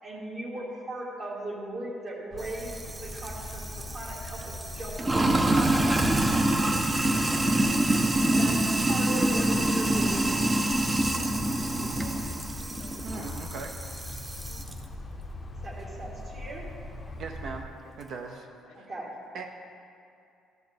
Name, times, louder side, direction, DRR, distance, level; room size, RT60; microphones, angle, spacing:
voice 1, 0.0-6.5 8.2-10.3 15.6-16.6 18.7-19.1, right 1 dB, 35° right, -3 dB, 1.8 m, -38 dB
sound 1, 2.3-17.6, left 2 dB, 25° left, 0.6 m, -41 dB
Sink (filling or washing), 2.4-14.7, right 1 dB, 20° right, 0.5 m, -26 dB
voice 2, 7.4-7.9 11.8-12.3 12.6-13.1 18.7-19.1, left 7 dB, 70° left, 7 dB, 0.5 m, -52 dB
voice 3, 13.0-13.7 17.2-17.7 18.0-18.5 18.8-18.9 19.3-19.4, right 4 dB, 60° right, 3 dB, 0.6 m, -38 dB
13.0 x 6.3 x 3.4 m, 2.5 s
cardioid pair, 140°, 0 cm